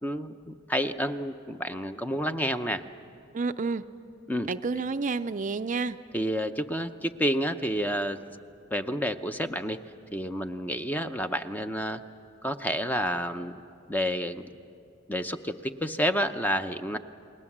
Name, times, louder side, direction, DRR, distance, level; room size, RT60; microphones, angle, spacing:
voice 1, 0.0-2.8 4.3-4.5 6.1-8.2 8.7-9.8 10.1-12.0 12.4-13.6 13.9-14.5 15.1-17.0, equal, 10° left, 8 dB, 0.7 m, -29 dB
voice 2, 3.3-3.8 4.5-6.0, right 4 dB, 40° right, 10 dB, 0.5 m, -29 dB
30.0 x 21.0 x 7.3 m, 2.5 s
head